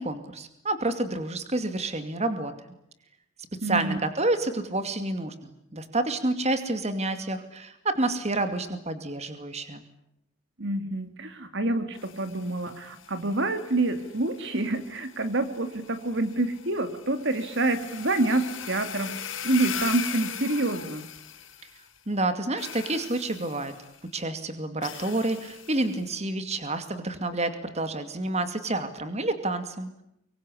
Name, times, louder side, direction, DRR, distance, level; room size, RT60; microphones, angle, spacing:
voice 1, 0.0-2.5 3.6-9.8 22.1-23.7 24.1-30.0, right 2 dB, 30° right, 9 dB, 2.4 m, -29 dB
voice 2, 3.6-4.0 10.6-21.1, right 2 dB, 60° right, 9 dB, 2.6 m, -27 dB
sound 1, 11.9-22.0 22.6-24.0 24.8-26.0, left 8 dB, 65° left, 7.6 m, -40 dB
25.0 x 23.5 x 10.0 m, 0.76 s
head